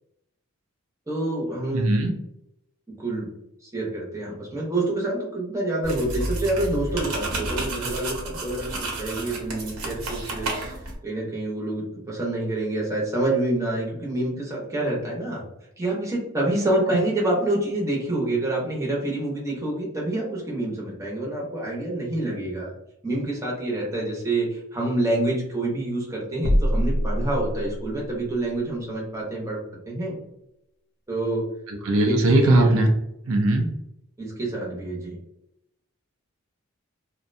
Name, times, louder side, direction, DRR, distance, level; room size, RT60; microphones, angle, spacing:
voice 1, 1.1-2.0 3.0-3.3 3.6-15.4 15.8-22.7 23.0-29.6 29.9-30.1 31.1-31.5 32.0-32.8 34.2-35.2, right 2 dB, 15° right, -3 dB, 0.7 m, -27 dB
voice 2, 1.7-2.2 31.7-32.9 33.3-33.7, right 2 dB, 70° right, 3 dB, 0.4 m, -19 dB
sound 1, 5.8-11.0, right 2 dB, 90° right, 0.8 m, -31 dB
sound 2, 26.4-28.0, equal, 70° left, 0.5 m, -23 dB
2.5 x 2.1 x 2.5 m, 0.83 s
head